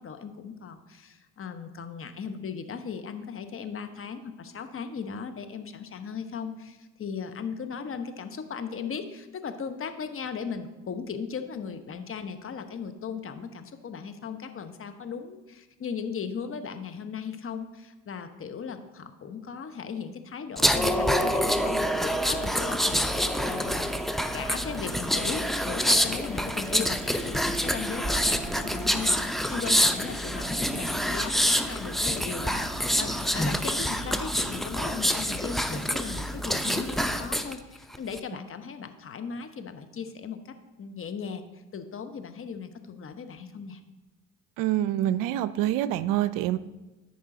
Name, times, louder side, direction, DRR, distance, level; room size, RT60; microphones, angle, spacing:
voice 1, 0.0-23.9 24.3-43.8, left 6 dB, 40° left, 8 dB, 1.0 m, -37 dB
sound 1, 20.6-37.5 37.9-38.2, equal, ahead, 0.7 m, -27 dB
voice 2, 44.6-46.6, right 13 dB, 70° right, 16 dB, 0.5 m, -26 dB
13.5 x 5.4 x 3.8 m, 1.1 s
hypercardioid pair, 65°, 35 cm